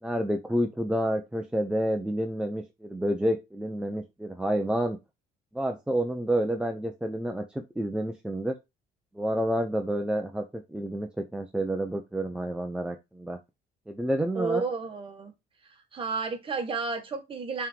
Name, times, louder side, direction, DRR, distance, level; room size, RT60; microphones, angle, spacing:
voice 1, 0.0-5.0 5.5-8.6 9.1-13.4 13.9-14.6, equal, 5° right, 4 dB, 0.7 m, -29 dB
voice 2, 14.3-15.3 15.6-17.7, right 4 dB, 30° right, 3 dB, 1.8 m, -32 dB
5.5 x 3.7 x 4.7 m, 0.23 s
cardioid pair, 110°, 17 cm